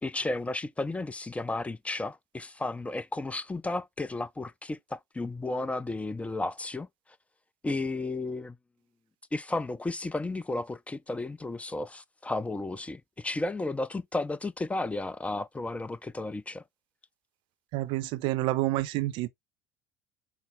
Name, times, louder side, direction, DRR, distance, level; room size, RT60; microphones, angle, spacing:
voice 1, 0.0-6.9 7.6-8.6 9.3-16.6, left 2 dB, 15° left, 0.5 m, -33 dB
voice 2, 17.7-19.3, right 17 dB, 60° right, 0.6 m, -28 dB
5.8 x 2.0 x 3.5 m
hypercardioid pair, 70°, 10 cm